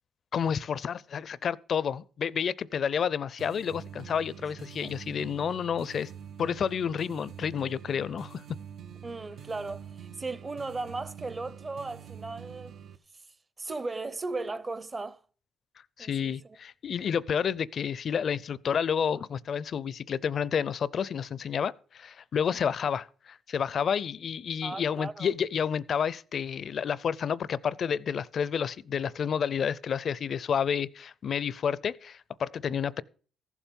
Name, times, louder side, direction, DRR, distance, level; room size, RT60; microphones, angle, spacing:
voice 1, 0.3-6.1 6.4-8.4 16.0-33.0, left 7 dB, 55° left, 0.5 m, -30 dB
sound 1, 3.4-13.0, right 8 dB, 65° right, 0.6 m, -46 dB
voice 2, 9.0-12.8 13.6-15.2 16.0-16.4 24.6-25.3, right 3 dB, 25° right, 0.7 m, -36 dB
14.5 x 7.2 x 5.3 m
cardioid pair, 90°, 0 cm